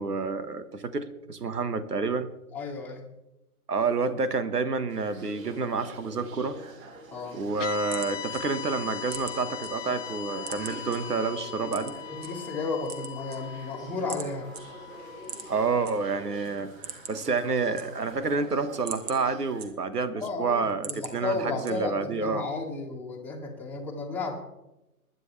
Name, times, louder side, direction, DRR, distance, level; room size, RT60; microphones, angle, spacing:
voice 1, 0.0-2.3 3.7-6.6 7.3-11.9 15.5-16.7 17.1-22.5, right 4 dB, 90° right, 12 dB, 1.6 m, -29 dB
voice 2, 2.5-3.0 7.1-7.4 12.2-14.5 20.1-24.4, left 3 dB, 5° left, -3 dB, 1.6 m, -33 dB
sound 1, 4.9-19.7, right 2 dB, 60° right, 3.2 m, -47 dB
sound 2, 7.6-15.9, left 11 dB, 50° left, 1.1 m, -40 dB
sound 3, 7.8-9.7 10.1-11.0 11.7-12.3 12.7-13.7 14.1-14.3 14.5-14.6 15.2-15.9 16.3-16.4 16.7-17.3 17.6-18.2 18.6-20.1 20.5-21.1 21.6-22.1, right 7 dB, 40° right, 1.9 m, -40 dB
20.5 x 11.0 x 3.3 m, 0.93 s
hypercardioid pair, 140°, 46 cm